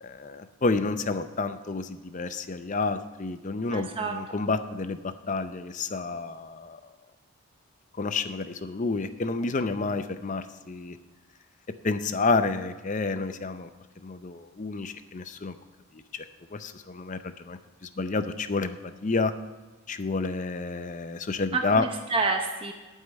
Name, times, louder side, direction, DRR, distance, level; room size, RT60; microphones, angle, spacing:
voice 1, 0.0-6.8 8.0-11.0 11.8-13.7 14.0-15.5 15.9-16.3 16.5-19.3 19.9-21.9, left 3 dB, 35° left, 11 dB, 0.5 m, -30 dB
voice 2, 3.7-4.1 21.5-22.7, right 4 dB, 25° right, 3 dB, 0.7 m, -28 dB
11.5 x 5.6 x 8.9 m, 1.3 s
head